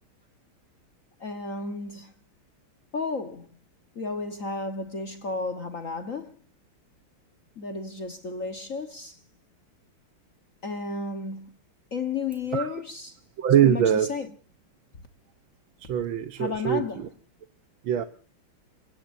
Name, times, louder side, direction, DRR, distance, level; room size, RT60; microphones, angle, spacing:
voice 1, 1.2-2.1 2.9-3.5 3.9-6.4 7.6-9.2 10.6-11.5 11.9-13.2 13.5-14.3 16.4-17.1 18.0-18.1, left 4 dB, 40° left, 1.5 m, -33 dB
voice 2, 13.4-14.1 15.8-17.1 17.8-18.0, right 9 dB, 70° right, 1.7 m, -23 dB
29.5 x 18.0 x 2.7 m
omnidirectional pair, 2.4 m